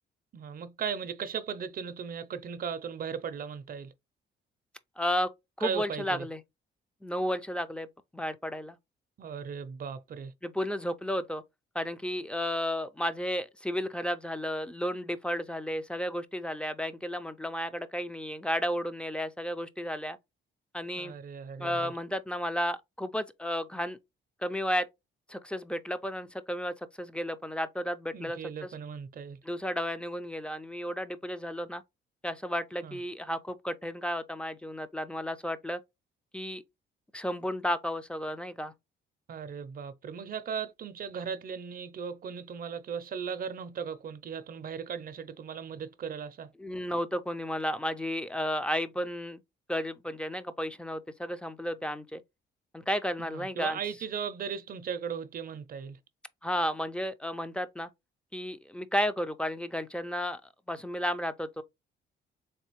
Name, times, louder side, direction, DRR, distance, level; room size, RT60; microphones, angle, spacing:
voice 1, 0.3-3.9 5.6-6.3 9.2-10.3 20.9-21.9 28.1-29.4 32.8-33.0 39.3-46.5 53.3-56.0, right 7 dB, 45° right, 0.5 m, -37 dB
voice 2, 5.0-5.3 5.6-6.4 7.0-7.9 8.1-8.8 10.4-11.4 11.7-20.2 20.7-21.1 21.6-24.0 24.4-24.9 25.3-28.7 29.4-31.8 32.2-35.8 36.3-36.6 37.1-38.7 46.6-49.4 49.7-52.2 52.7-53.8 56.4-57.9 58.3-60.4 60.7-61.6, equal, 5° left, 0.4 m, -33 dB
3.7 x 3.3 x 3.0 m
cardioid pair, 90°, 20 cm